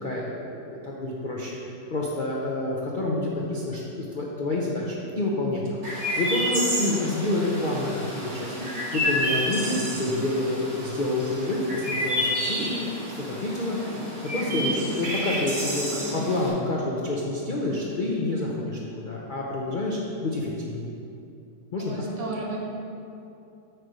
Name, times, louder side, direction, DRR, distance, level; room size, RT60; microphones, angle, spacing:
voice 1, 0.0-1.6 1.9-5.8 6.2-8.1 8.3-13.8 14.3-20.8 21.7-22.0, left 2 dB, 60° left, -4 dB, 0.5 m, -28 dB
Chirp tweet, 5.8-16.5, equal, 40° right, 2.2 m, -30 dB
voice 2, 21.8-22.6, right 3 dB, 80° right, -1 dB, 1.8 m, -33 dB
8.9 x 3.3 x 6.2 m, 2.7 s
omnidirectional pair, 1.9 m